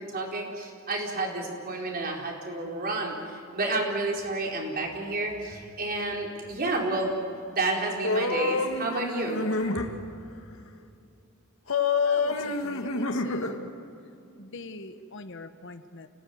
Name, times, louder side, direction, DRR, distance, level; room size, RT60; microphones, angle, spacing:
voice 1, 0.0-7.1 7.4-9.4, right 2 dB, 45° right, 0 dB, 4.7 m, -30 dB
sound 1, 8.0-9.9 11.7-13.6, left 3 dB, 80° left, 2.0 m, -27 dB
voice 2, 12.0-13.7 14.4-16.1, left 2 dB, 60° left, 9 dB, 1.3 m, -42 dB
28.0 x 18.5 x 9.6 m, 2.6 s
head